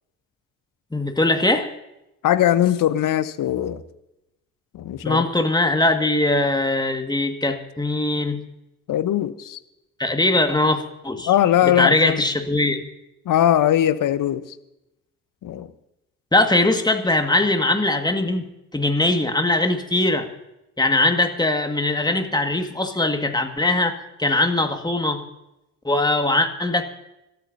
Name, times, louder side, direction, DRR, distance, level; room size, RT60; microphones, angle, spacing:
voice 1, 0.9-1.7 5.0-8.4 10.0-11.3 11.6-12.8 16.3-18.5 18.7-20.3 20.8-25.2 25.8-26.8, left 2 dB, 10° left, 6 dB, 1.9 m, -21 dB
voice 2, 2.2-3.8 4.7-5.2 8.9-9.6 11.2-12.2 13.2-14.4 15.4-15.7, left 11 dB, 50° left, 13 dB, 1.0 m, -20 dB
27.0 x 13.0 x 2.8 m, 0.91 s
figure-of-eight pair, 45°, 42 cm